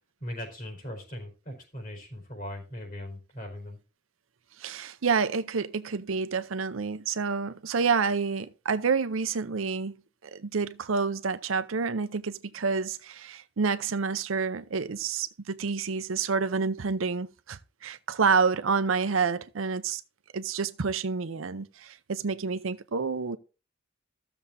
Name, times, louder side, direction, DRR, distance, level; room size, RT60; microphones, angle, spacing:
voice 1, 0.2-3.8, left 1 dB, 45° left, 4.4 m, -39 dB
voice 2, 4.6-10.0 10.2-20.0 20.3-23.4, right 5 dB, 80° right, 0.6 m, -28 dB
15.0 x 7.0 x 2.7 m
head